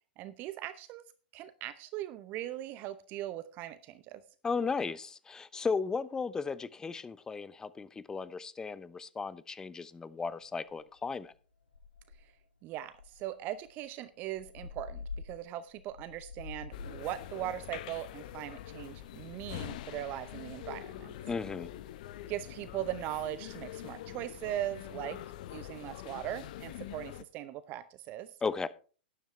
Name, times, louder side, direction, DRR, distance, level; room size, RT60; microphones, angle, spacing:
voice 1, 0.2-1.0 1.3-4.2 12.2-12.3 12.6-21.1 22.3-25.2 25.5-28.3, right 13 dB, 35° right, 0.7 m, -39 dB
voice 2, 4.4-11.3 21.3-21.7 28.4-28.7, left 5 dB, 10° left, 0.6 m, -35 dB
sound 1, 10.3-10.4 10.7-11.0 11.3-11.4 11.7-12.4 12.9-17.1, left 4 dB, 80° left, 1.4 m, -46 dB
sound 2, 16.7-27.2, left 12 dB, 50° left, 0.7 m, -44 dB
12.0 x 10.0 x 3.4 m
figure-of-eight pair, 105°, 5 cm